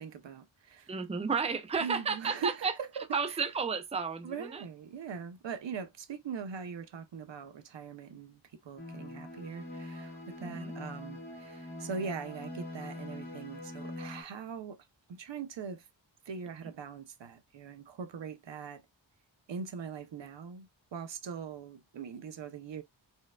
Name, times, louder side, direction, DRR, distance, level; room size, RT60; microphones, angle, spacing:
voice 1, 0.0-0.9 1.8-3.4 4.2-15.9 16.3-18.9 19.5-22.8, right 6 dB, 70° right, 0.6 m, -41 dB
voice 2, 0.9-2.7 3.1-4.6 10.4-10.7, right 5 dB, 15° right, 0.5 m, -32 dB
sound 1, 8.8-14.2, left 1 dB, 65° left, 1.9 m, -43 dB
4.4 x 2.1 x 2.2 m
wide cardioid pair, 75°, 46 cm